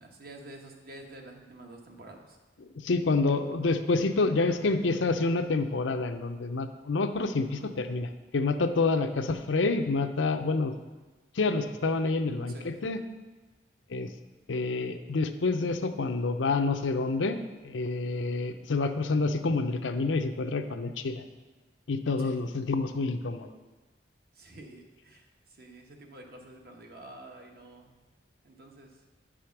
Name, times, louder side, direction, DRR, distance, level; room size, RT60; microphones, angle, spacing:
voice 1, 0.0-2.4 7.4-7.7 12.5-12.7 22.2-22.4 24.3-28.0 28.4-28.9, right 2 dB, 55° right, 2 dB, 1.2 m, -48 dB
voice 2, 2.8-10.7 11.4-13.0 13.9-14.1 14.5-21.2 21.9-23.5, left 3 dB, 90° left, 8 dB, 0.6 m, -28 dB
9.1 x 5.0 x 5.9 m, 1.2 s
head